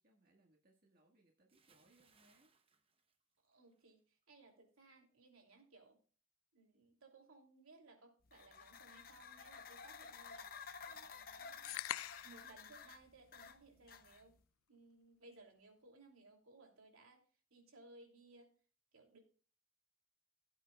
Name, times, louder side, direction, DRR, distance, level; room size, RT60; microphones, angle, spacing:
voice 1, 0.0-2.5, right 1 dB, 45° right, 0 dB, 1.7 m, -72 dB
Bathtub (filling or washing) / Splash splatter, 1.5-3.9 4.2-4.5, right 5 dB, 25° right, 0.9 m, -73 dB
voice 2, 3.4-6.0 6.5-10.5 10.9-11.7 12.2-14.3 14.7-17.2 17.5-18.6 18.9-19.2, right 2 dB, 80° right, 2 dB, 3.1 m, -62 dB
sound 1, 8.3-14.4, left 6 dB, 40° left, 0.7 m, -53 dB
sound 2, 11.7-12.5, left 14 dB, 75° left, 0.3 m, -43 dB
17.0 x 8.4 x 2.4 m, 0.40 s
head